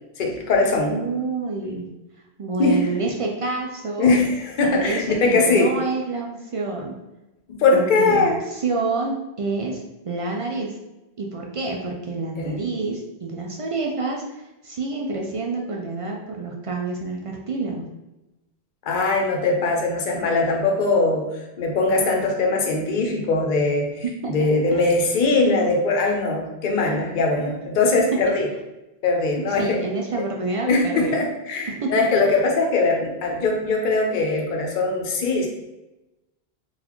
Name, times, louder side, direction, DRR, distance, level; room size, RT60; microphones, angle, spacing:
voice 1, 0.2-0.9 2.6-2.8 4.0-5.7 7.5-8.4 12.4-12.6 18.8-21.3 21.6-28.5 29.0-29.8 30.7-35.5, left 3 dB, 55° left, 1 dB, 0.8 m, -21 dB
voice 2, 0.9-1.9 2.4-4.1 4.6-7.0 7.7-10.8 11.2-17.9 24.2-24.8 28.0-28.4 29.6-31.2 31.7-32.1, right 3 dB, 55° right, 0 dB, 0.3 m, -28 dB
3.9 x 2.4 x 3.0 m, 0.98 s
omnidirectional pair, 1.0 m